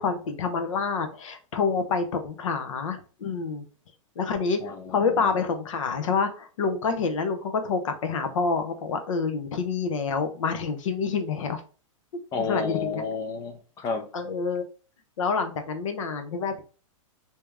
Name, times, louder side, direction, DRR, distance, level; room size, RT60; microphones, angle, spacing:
voice 1, 0.0-3.6 4.2-11.6 12.4-13.0 14.1-14.6 15.2-16.6, left 5 dB, 70° left, 0.9 m, -27 dB
voice 2, 4.6-5.3 12.3-14.1, left 5 dB, 20° left, 0.4 m, -31 dB
3.4 x 2.8 x 3.4 m
hypercardioid pair, 160°, 17 cm